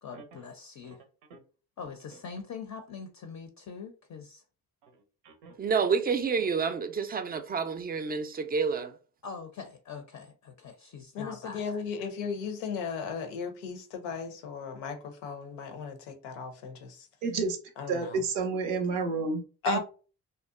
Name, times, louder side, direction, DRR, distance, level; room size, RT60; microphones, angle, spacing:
voice 1, 0.0-1.0 1.8-4.4 9.2-11.6, left 5 dB, 40° left, 0.5 m, -43 dB
voice 2, 5.6-8.9, right 5 dB, 20° right, 0.3 m, -29 dB
voice 3, 11.1-17.1 17.8-18.2 19.6-19.8, left 5 dB, 85° left, 0.6 m, -36 dB
voice 4, 17.2-17.6 17.9-19.8, right 4 dB, 85° right, 0.6 m, -30 dB
2.6 x 2.1 x 2.4 m
hypercardioid pair, 45°, 46 cm